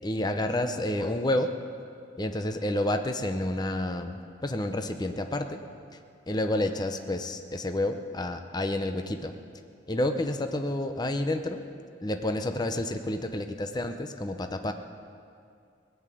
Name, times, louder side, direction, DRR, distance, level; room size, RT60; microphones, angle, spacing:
voice 1, 0.0-1.5 2.2-5.6 6.3-9.3 9.9-11.6 12.0-14.7, left 1 dB, 20° left, 6 dB, 0.6 m, -29 dB
18.5 x 8.1 x 9.2 m, 2.3 s
head